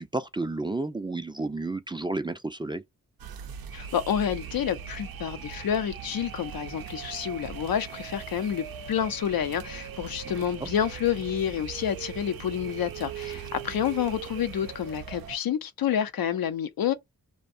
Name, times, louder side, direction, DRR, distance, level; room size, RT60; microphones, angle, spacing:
voice 1, 0.0-2.8 10.6-10.7, right 2 dB, 15° right, 0.4 m, -31 dB
sound 1, 3.2-15.4, right 8 dB, 80° right, 0.5 m, -40 dB
voice 2, 3.7-16.9, left 9 dB, 80° left, 0.6 m, -29 dB
2.6 x 2.1 x 2.5 m
cardioid pair, 55°, 35 cm